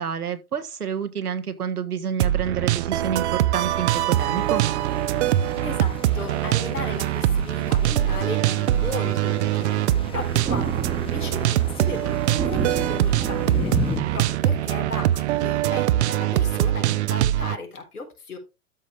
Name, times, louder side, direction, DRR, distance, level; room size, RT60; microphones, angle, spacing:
voice 1, 0.0-4.7, right 7 dB, 85° right, 1.5 m, -29 dB
sound 1, 2.2-17.6, right 13 dB, 50° right, 0.7 m, -23 dB
sound 2, 3.5-14.0, left 6 dB, 10° left, 1.2 m, -37 dB
voice 2, 5.6-13.7 14.1-18.4, left 4 dB, 90° left, 3.8 m, -36 dB
Thunder, 10.3-16.1, right 7 dB, 15° right, 1.1 m, -32 dB
13.0 x 5.4 x 3.3 m
hypercardioid pair, 115°, 44 cm